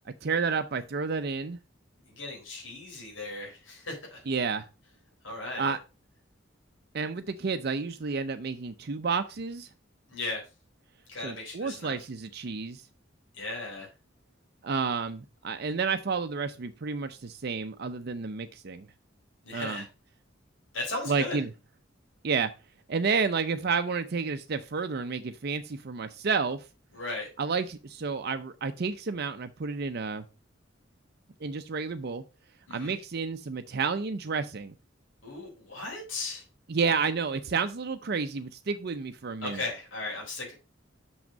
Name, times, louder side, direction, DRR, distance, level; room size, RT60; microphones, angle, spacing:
voice 1, 0.2-1.6 4.3-4.7 5.6-5.8 6.9-9.7 11.2-12.8 14.6-18.9 19.5-19.8 21.1-21.5 22.2-22.5 22.9-26.6 27.4-30.2 31.4-32.2 32.7-34.7 36.7-39.6, right 5 dB, 55° right, 8 dB, 0.6 m, -30 dB
voice 2, 2.1-4.2 5.2-5.7 10.1-10.4 11.1-11.9 13.3-13.9 19.4-19.9 20.7-21.4 26.9-27.3 32.7-32.9 35.2-36.4 39.4-40.5, left 2 dB, 85° left, -3 dB, 4.1 m, -36 dB
6.3 x 6.0 x 5.1 m, 0.30 s
head